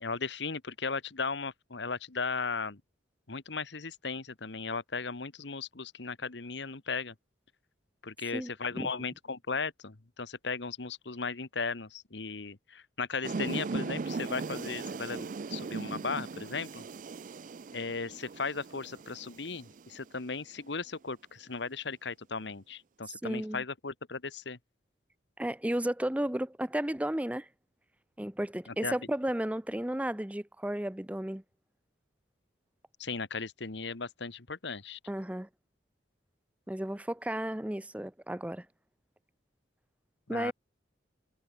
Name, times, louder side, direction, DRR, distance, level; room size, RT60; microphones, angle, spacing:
voice 1, 0.0-2.8 3.3-7.1 8.0-16.8 17.7-24.6 28.7-28.9 33.0-35.0 40.3-40.5, left 4 dB, 70° left, 1.3 m, -36 dB
sound 1, 13.2-20.2, right 4 dB, 45° right, 0.4 m, -38 dB
voice 2, 23.2-23.6 25.4-27.5 28.2-31.4 35.1-35.5 36.7-38.7 40.3-40.5, right 1 dB, 5° right, 0.6 m, -33 dB
head